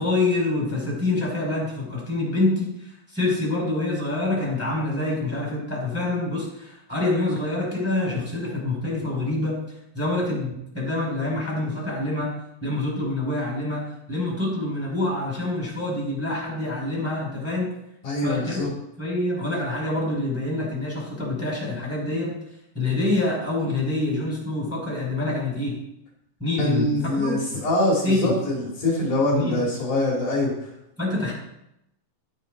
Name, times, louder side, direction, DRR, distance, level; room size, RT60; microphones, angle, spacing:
voice 1, 0.0-9.6 9.9-17.7 18.2-18.6 19.0-22.4 22.7-25.8 26.4-27.3 28.0-28.3 29.3-29.7 31.0-31.3, left 2 dB, 5° left, -4 dB, 5.0 m, -26 dB
voice 2, 18.0-18.7 26.6-30.7, left 1 dB, 65° left, -2 dB, 3.8 m, -24 dB
13.0 x 9.8 x 3.9 m, 0.83 s
omnidirectional pair, 4.0 m